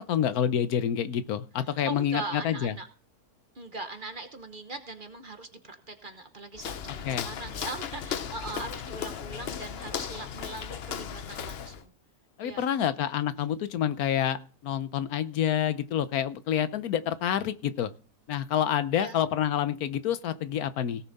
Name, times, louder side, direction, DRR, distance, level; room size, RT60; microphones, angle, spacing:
voice 1, 0.1-2.7 7.0-7.3 12.4-14.4 14.6-17.9 18.3-21.1, left 9 dB, 75° left, 13 dB, 1.2 m, -28 dB
voice 2, 1.6-2.9 3.5-11.9 12.4-12.9 18.9-19.2, right 3 dB, 35° right, 6 dB, 1.1 m, -40 dB
Walk footsteps, 6.5-11.8, left 8 dB, 55° left, 0.7 m, -36 dB
17.5 x 7.0 x 4.1 m, 0.38 s
omnidirectional pair, 1.6 m